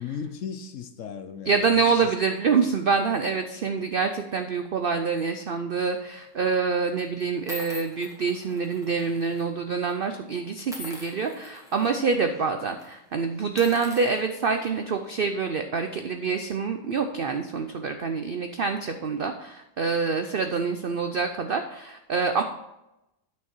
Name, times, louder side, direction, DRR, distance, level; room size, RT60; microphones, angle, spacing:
voice 1, 0.0-2.1, left 7 dB, 60° left, 9 dB, 0.9 m, -36 dB
voice 2, 1.5-22.4, right 5 dB, 75° right, 7 dB, 0.5 m, -26 dB
sound 1, 5.8-6.1 6.8-6.9 7.5-9.4 9.7-9.9 10.7-11.9 12.3-12.5 12.8-12.9 13.4-15.0, left 1 dB, ahead, 1.7 m, -44 dB
9.9 x 6.4 x 4.4 m, 0.91 s
omnidirectional pair, 1.7 m